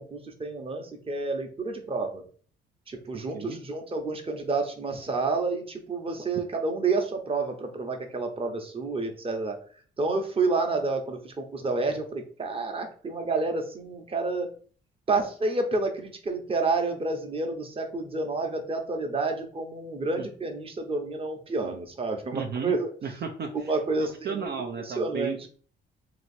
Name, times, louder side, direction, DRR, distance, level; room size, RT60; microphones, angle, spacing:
voice 1, 0.0-2.2 2.9-9.6 10.0-14.5 15.1-22.9 23.7-24.4 24.8-25.4, right 3 dB, 30° right, 4 dB, 0.9 m, -29 dB
voice 2, 3.1-3.6 20.2-20.3 22.3-23.7 24.0-25.5, right 5 dB, 55° right, 2 dB, 0.6 m, -34 dB
3.0 x 2.9 x 4.3 m, 0.43 s
cardioid pair, 90°, 20 cm